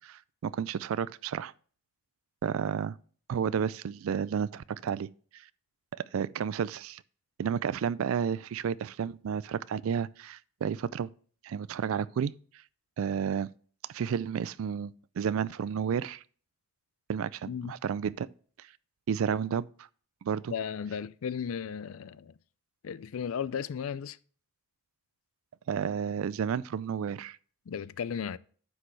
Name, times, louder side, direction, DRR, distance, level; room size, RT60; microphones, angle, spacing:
voice 1, 0.0-1.5 2.4-3.0 3.3-5.1 6.1-7.0 7.4-11.1 11.4-12.3 13.0-13.5 13.9-16.2 17.1-18.3 19.1-19.9 20.2-20.5 25.7-27.4, right 7 dB, 70° right, 0.3 m, -31 dB
voice 2, 20.5-22.3 22.8-24.2 27.7-28.4, left 7 dB, 70° left, 0.4 m, -35 dB
9.8 x 6.2 x 3.2 m
head